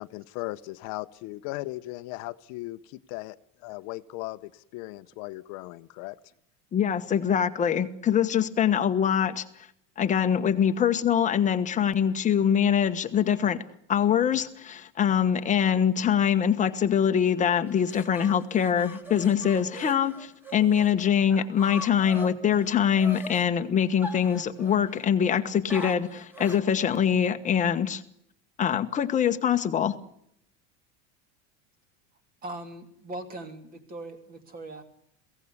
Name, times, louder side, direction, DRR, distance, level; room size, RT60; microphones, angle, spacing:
voice 1, 0.0-3.4 3.6-6.2, left 19 dB, 55° left, 12 dB, 0.9 m, -37 dB
voice 2, 6.7-9.4 10.0-13.6 13.9-28.0 28.6-30.0, left 8 dB, 20° left, 8 dB, 1.3 m, -24 dB
sound 1, 17.7-20.9 21.3-23.4 24.0-25.0 25.7-26.7, left 1 dB, 5° right, 2.3 m, -41 dB
voice 3, 32.4-34.8, right 2 dB, 25° right, 8 dB, 2.9 m, -40 dB
22.5 x 17.0 x 9.6 m, 0.75 s
cardioid pair, 170°, 36 cm